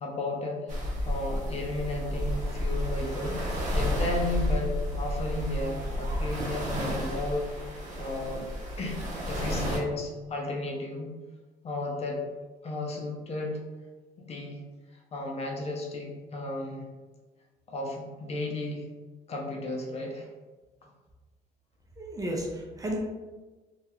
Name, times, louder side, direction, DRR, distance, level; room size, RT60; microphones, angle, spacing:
voice 1, 0.0-3.4 3.7-7.5 8.0-8.5 8.8-9.0 9.3-11.1 11.6-12.2 12.6-13.6 14.2-14.6 15.1-16.9 17.7-18.9 19.3-20.3, left 2 dB, 40° left, 1 dB, 0.5 m, -34 dB
sound 1, 0.7-9.8, equal, 45° right, 0.8 m, -31 dB
voice 2, 22.0-23.0, right 1 dB, 20° right, -1 dB, 0.5 m, -33 dB
2.8 x 2.3 x 2.9 m, 1.3 s
cardioid pair, 110°, 17 cm